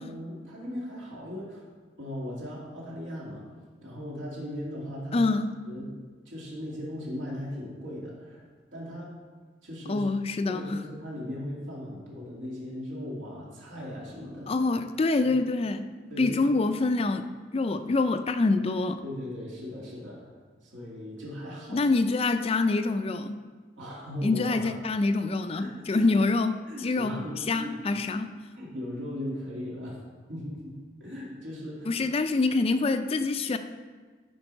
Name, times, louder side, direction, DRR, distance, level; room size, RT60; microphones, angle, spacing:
voice 1, 0.0-1.7 2.0-3.5 3.8-5.2 5.7-5.9 6.3-8.4 8.7-9.1 9.6-10.0 10.4-14.5 15.2-15.3 16.1-16.4 19.0-20.3 20.6-21.8 23.8-24.7 25.6-26.1 26.7-27.7 28.1-28.2 28.6-30.0 30.3-32.0, left 1 dB, 80° right, -5 dB, 2.2 m, -38 dB
voice 2, 5.1-5.6 9.9-10.8 14.5-15.8 16.2-19.0 21.7-23.4 24.2-28.3 31.9-33.6, left 3 dB, 30° left, 9 dB, 0.4 m, -26 dB
11.5 x 4.7 x 5.3 m, 1.4 s
head